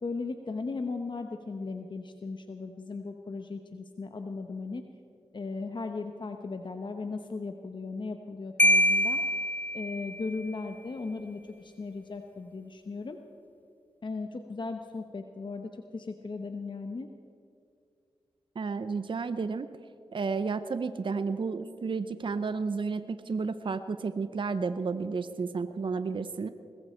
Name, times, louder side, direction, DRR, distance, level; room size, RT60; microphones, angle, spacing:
voice 1, 0.0-4.8 5.3-9.2 9.7-13.2 14.0-17.1, left 3 dB, 50° left, 6 dB, 0.9 m, -37 dB
Marimba xylophone, 8.6-10.3, left 1 dB, 15° left, 0.4 m, -25 dB
voice 2, 18.6-19.7 20.1-26.5, right 4 dB, 50° right, 11 dB, 0.7 m, -32 dB
20.5 x 15.0 x 4.4 m, 2.4 s
cardioid pair, 45°, 10 cm